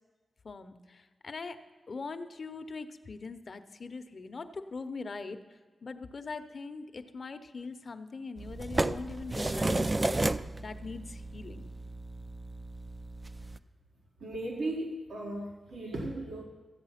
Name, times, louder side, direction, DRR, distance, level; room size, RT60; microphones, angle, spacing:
voice 1, 0.4-1.6 1.9-9.9 10.6-11.7, left 4 dB, 50° left, 9 dB, 0.7 m, -42 dB
sound 1, 8.4-13.6, right 2 dB, 25° right, 0.3 m, -33 dB
voice 2, 14.2-16.4, right 1 dB, 80° right, 0 dB, 1.5 m, -36 dB
13.5 x 8.4 x 5.7 m, 1.4 s
wide cardioid pair, 90°, 0 cm